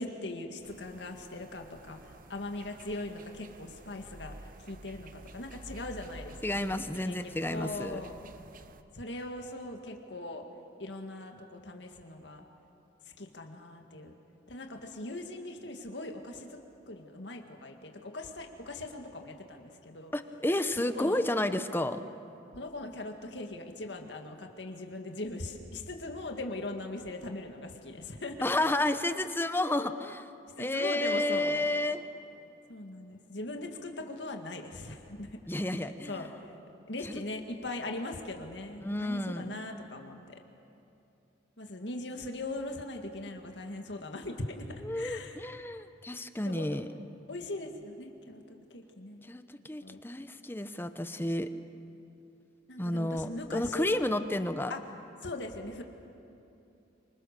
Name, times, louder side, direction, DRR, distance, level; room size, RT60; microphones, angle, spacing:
voice 1, 0.0-6.4 6.7-8.1 8.9-10.4 10.8-12.4 13.2-14.1 14.5-16.6 16.9-20.1 20.8-21.2 22.5-28.5 30.6-31.7 32.7-35.3 36.1-36.6 36.9-40.4 41.6-44.7 44.9-45.4 46.5-46.7 47.3-49.3 49.8-50.0 52.7-54.0 54.7-54.8 55.2-55.8, left 2 dB, 70° left, 4 dB, 1.9 m, -40 dB
sound 1, 0.6-8.8, right 2 dB, 50° right, 0.9 m, -51 dB
voice 2, 6.4-8.0 20.1-22.0 28.4-30.3 30.6-32.0 35.5-36.3 37.0-37.2 38.8-39.5 44.8-46.9 49.2-51.5 52.8-54.7, left 1 dB, 10° left, 10 dB, 0.8 m, -31 dB
26.0 x 25.0 x 6.8 m, 2.8 s
head